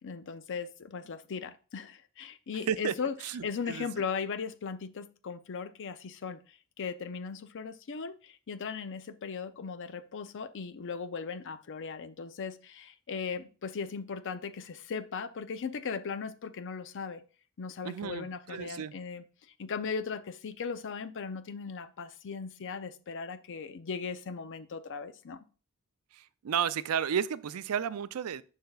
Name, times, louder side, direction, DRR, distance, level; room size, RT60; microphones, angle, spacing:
voice 1, 0.0-3.1 3.4-17.2 17.6-19.2 19.6-25.4, left 5 dB, 60° left, 0.5 m, -38 dB
voice 2, 3.2-3.9 17.8-18.9 26.1-28.4, right 8 dB, 80° right, 0.4 m, -32 dB
10.5 x 5.7 x 2.3 m
head